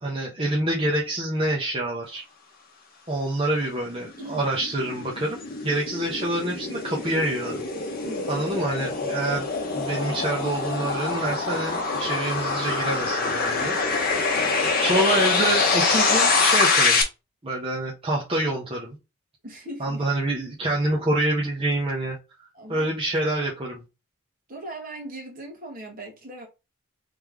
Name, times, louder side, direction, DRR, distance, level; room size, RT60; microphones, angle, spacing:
voice 1, 0.0-2.2 3.1-7.6 8.3-14.0 14.8-17.0 17.4-19.0 19.8-22.2 22.7-23.8, right 1 dB, 25° right, 0.8 m, -27 dB
sound 1, 3.8-17.0, left 4 dB, 40° left, 0.9 m, -25 dB
voice 2, 4.2-4.5 8.0-8.4 13.4-13.9 14.3-14.4 19.4-20.0 22.5-22.9 24.5-26.5, right 1 dB, 40° right, 1.5 m, -39 dB
3.4 x 3.0 x 3.5 m
head